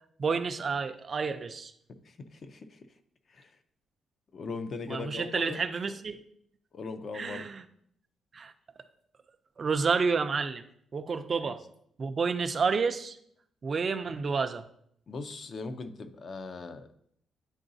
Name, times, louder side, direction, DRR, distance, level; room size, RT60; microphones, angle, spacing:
voice 1, 0.2-1.7 4.9-6.2 7.1-7.6 8.3-8.5 9.6-10.6 10.9-11.6 12.0-13.2 13.6-14.6, right 5 dB, 40° right, 10 dB, 0.4 m, -29 dB
voice 2, 1.9-2.9 3.3-3.6 4.3-5.6 6.7-7.5 11.4-11.5 15.1-16.9, left 4 dB, 45° left, 9 dB, 0.6 m, -40 dB
9.8 x 3.8 x 2.7 m, 0.69 s
cardioid pair, 115°, 0 cm